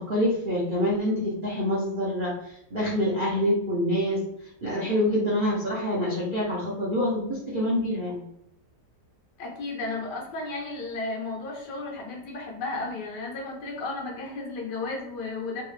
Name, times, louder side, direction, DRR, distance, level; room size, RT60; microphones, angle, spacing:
voice 1, 0.0-4.2 4.6-8.2, left 1 dB, 50° right, -7 dB, 0.6 m, -26 dB
voice 2, 9.4-15.6, left 3 dB, 80° left, -1 dB, 1.5 m, -33 dB
3.4 x 2.3 x 3.2 m, 0.79 s
omnidirectional pair, 1.8 m